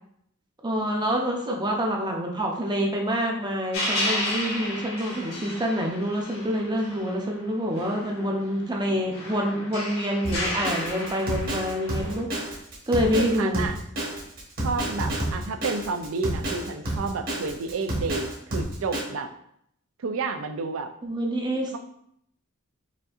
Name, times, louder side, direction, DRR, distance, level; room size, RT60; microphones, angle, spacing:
voice 1, 0.6-12.6 12.9-13.6 21.0-21.8, equal, 20° right, 1 dB, 0.6 m, -27 dB
sound 1, 3.7-7.4 7.7-12.2, left 1 dB, 65° left, 1.4 m, -33 dB
Drum kit, 10.2-19.0, right 1 dB, 45° right, 1.3 m, -29 dB
voice 2, 13.1-13.8 14.6-19.3 20.0-20.9, right 4 dB, 75° right, 8 dB, 0.4 m, -30 dB
5.0 x 2.7 x 2.4 m, 0.70 s
head